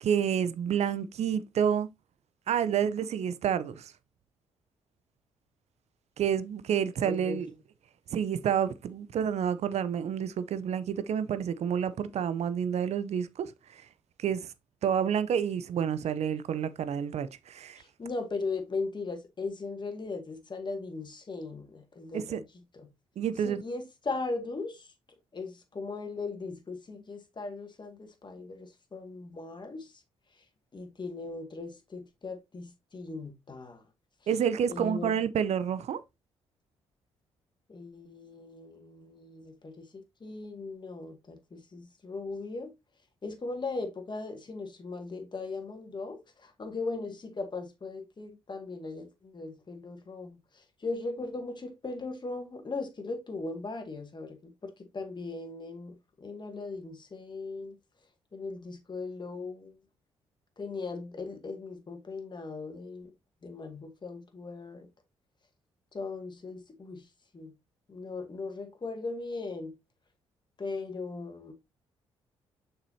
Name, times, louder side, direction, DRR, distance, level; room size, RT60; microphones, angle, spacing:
voice 1, 0.0-1.9 2.5-3.9 6.2-7.5 8.1-13.9 14.2-14.5 14.8-17.8 22.1-22.4 23.2-23.6 34.3-36.0, right 8 dB, 60° right, 0.7 m, -29 dB
voice 2, 7.0-7.4 17.8-22.4 22.7-22.9 23.4-24.9 25.3-30.0 30.4-30.5 30.7-33.8 34.7-35.1 37.7-42.7 43.2-57.8 58.3-59.8 60.6-63.1 63.4-64.9 65.9-67.1 67.3-67.5 67.9-69.7 70.6-71.5, left 3 dB, 35° left, 2.1 m, -38 dB
6.7 x 5.7 x 2.8 m
hypercardioid pair, 45°, 13 cm